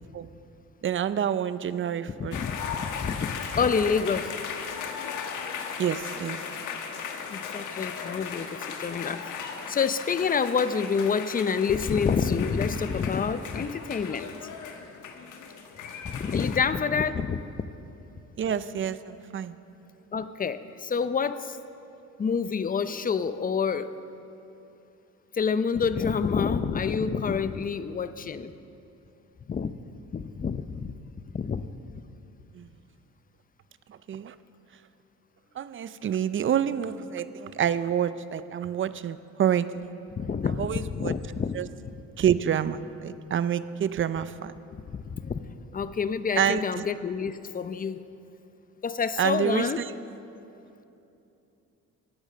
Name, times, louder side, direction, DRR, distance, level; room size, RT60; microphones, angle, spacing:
voice 1, 0.8-2.4 5.8-6.4 18.4-19.6 32.5-32.7 33.9-34.3 35.6-39.7 40.6-41.1 41.5-41.7 42.2-44.5 46.4-46.8 49.2-49.9, right 9 dB, 40° right, 14 dB, 0.5 m, -28 dB
voice 2, 2.2-4.3 7.3-14.3 16.0-17.4 20.1-21.6 22.2-23.9 25.3-28.5 29.5-29.7 30.1-31.0 31.3-31.7 40.2-41.6 44.9-48.0 48.8-49.8, left 6 dB, 30° left, 13 dB, 0.6 m, -28 dB
sound 1, 2.3-16.6, left 6 dB, 80° left, 1.2 m, -37 dB
15.5 x 8.7 x 6.5 m, 2.8 s
cardioid pair, 90°, 30 cm